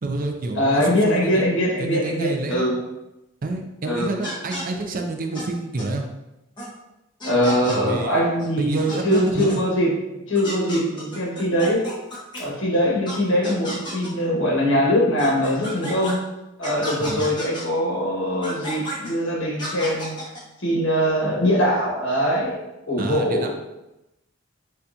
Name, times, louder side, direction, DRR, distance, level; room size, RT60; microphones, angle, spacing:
voice 1, 0.0-1.4 1.8-2.7 3.4-6.1 7.7-8.3 8.6-9.6 17.0-17.3 23.0-23.5, right 3 dB, 40° right, 4 dB, 0.4 m, -28 dB
voice 2, 0.5-2.8 3.8-4.2 7.2-8.8 9.0-9.9 10.3-11.8 12.4-16.2 16.6-20.1 20.6-22.5 22.9-23.5, equal, 60° left, -4 dB, 1.5 m, -22 dB
sound 1, 4.2-4.6 5.3-5.4 5.8-5.9 6.6-6.7 7.2-7.8 8.4-8.5 8.8-9.6 10.3-12.4 13.1-13.2 13.4-14.1 15.2-16.1 16.6-17.6 18.4-19.1 19.6-20.4, equal, 20° left, 1.1 m, -33 dB
6.7 x 2.5 x 2.7 m, 0.94 s
head